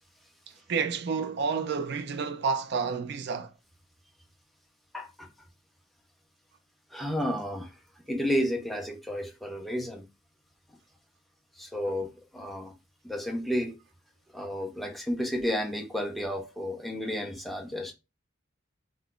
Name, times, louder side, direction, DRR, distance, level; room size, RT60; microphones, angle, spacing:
voice 1, 0.7-3.5, right 5 dB, 60° right, 0.4 m, -30 dB
voice 2, 4.9-5.3 6.9-7.8 8.1-10.0 11.6-12.7 13.0-13.7 14.3-17.9, equal, ahead, 0.5 m, -32 dB
2.4 x 2.2 x 3.6 m
head